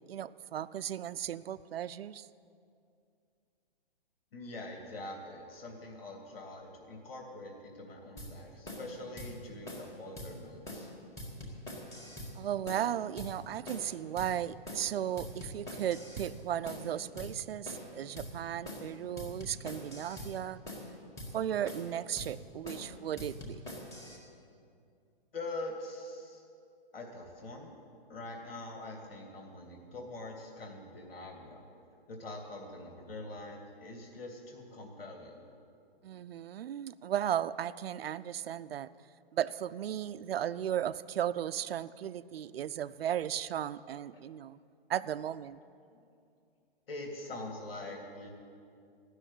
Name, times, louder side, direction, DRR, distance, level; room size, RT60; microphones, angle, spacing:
voice 1, 0.0-2.3 12.3-20.6 21.3-23.6 36.0-38.9 39.3-44.6 44.9-45.6, right 10 dB, 75° right, 15 dB, 0.6 m, -35 dB
voice 2, 4.3-10.9 25.3-26.4 26.9-27.7 28.1-31.6 32.1-35.4 45.9-46.0 46.9-48.3, left 2 dB, 70° left, 1 dB, 2.8 m, -44 dB
sound 1, 8.2-8.3 8.7-8.9 9.2-9.3 9.7-9.9 10.2-10.3 10.7-10.9 11.2-12.3 12.7-12.9 13.2-13.3 13.7-13.9 14.2-14.3 14.7-14.9 15.2-16.3 16.7-16.9 17.2-17.3 17.7-17.9 18.2-18.3 18.7-18.9 19.2-20.3 20.7-20.9 21.2-21.3 21.7-21.9 22.2-22.3 22.7-22.9 23.2-24.2, left 1 dB, 10° left, 1.8 m, -43 dB
15.0 x 6.5 x 9.9 m, 2.4 s
hypercardioid pair, 155°, 30 cm